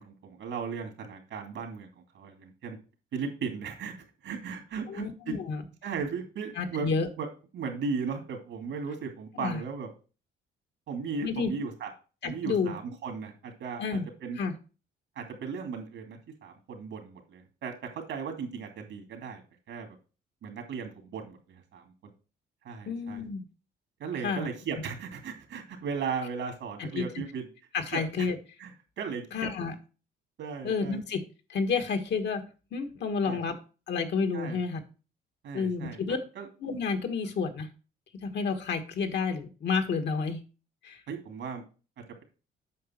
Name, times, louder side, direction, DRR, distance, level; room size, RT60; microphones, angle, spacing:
voice 1, 0.0-2.8 3.1-3.9 4.2-5.4 5.8-7.3 7.5-9.9 10.9-11.9 12.2-14.4 15.2-19.4 19.7-20.0 20.4-21.8 22.6-23.2 24.0-27.5 27.9-28.3 28.6-28.7 29.0-29.5 30.4-31.0 33.2-33.4 34.3-34.6 35.4-36.5 41.1-41.6, right 5 dB, 75° right, 5 dB, 2.5 m, -36 dB
voice 2, 4.9-5.6 6.5-7.1 9.3-9.6 11.2-11.5 12.2-12.8 13.8-14.1 14.4-14.5 22.9-23.4 24.2-24.5 26.8-27.2 27.7-28.4 29.3-29.7 30.6-31.2 31.5-32.4 32.7-33.6 33.9-34.8 35.5-36.2 36.6-37.7 38.2-40.4 40.8-41.0, left 5 dB, 65° left, 7 dB, 1.5 m, -30 dB
8.5 x 5.7 x 4.4 m, 0.34 s
cardioid pair, 90°, 20 cm